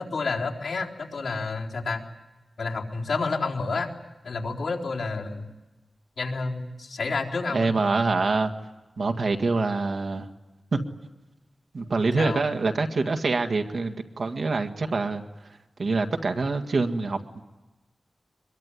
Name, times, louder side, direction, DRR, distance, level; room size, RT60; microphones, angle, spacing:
voice 1, 0.0-2.1 2.6-3.9 4.2-5.5 6.2-7.7 12.2-12.4, left 3 dB, 90° left, -3 dB, 4.1 m, -29 dB
voice 2, 7.5-8.5 9.0-10.3 10.7-10.8 11.7-15.2 15.8-17.4, right 3 dB, 70° right, 6 dB, 1.9 m, -25 dB
24.0 x 22.5 x 10.0 m, 1.1 s
wide cardioid pair, 115°, 0 cm